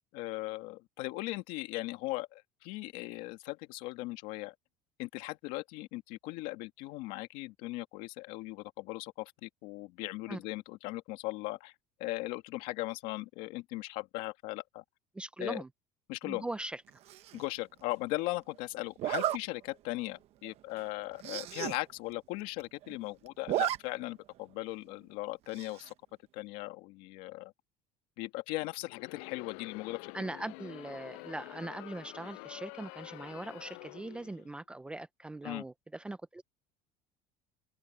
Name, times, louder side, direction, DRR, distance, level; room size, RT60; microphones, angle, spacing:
voice 1, 0.1-4.5 5.0-11.7 12.0-14.8 15.4-15.6 16.1-16.4 17.3-25.9 26.3-27.5 28.2-30.1 35.4-35.6, left 20 dB, 65° left, 1.9 m, -38 dB
voice 2, 15.1-15.7 16.2-16.8 30.1-36.4, right 2 dB, 5° right, 0.5 m, -41 dB
Zipper (clothing), 17.1-17.5 19.0-19.4 19.9-20.1 20.4-20.5 20.8-20.9 21.2-21.8 22.1-22.2 22.4-23.0 23.3-23.8 24.1-24.2 25.5-25.9, right 13 dB, 40° right, 1.0 m, -33 dB
Crowd, 28.8-34.5, left 40 dB or more, 85° left, 6.6 m, -48 dB
open air
cardioid pair, 175°, 15 cm